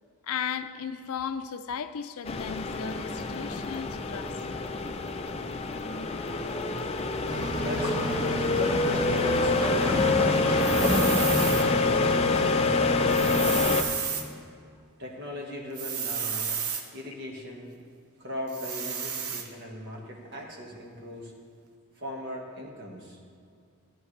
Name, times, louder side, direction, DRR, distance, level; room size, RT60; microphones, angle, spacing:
voice 1, 0.2-4.3, left 7 dB, 80° left, 11 dB, 0.5 m, -35 dB
sound 1, 2.2-13.8, left 3 dB, 25° left, 0.4 m, -26 dB
sound 2, 7.3-13.6, equal, 20° right, 2.1 m, -30 dB
voice 2, 7.6-8.4 8.9-12.3 12.9-13.9 15.0-16.6 16.9-17.7 18.2-21.3 21.9-23.2, left 1 dB, 50° right, -1 dB, 1.6 m, -39 dB
sound 3, 10.6-11.7 13.1-14.3 15.7-16.8 18.5-19.5, right 7 dB, 80° right, 0.9 m, -32 dB
13.5 x 10.5 x 3.3 m, 2.3 s
head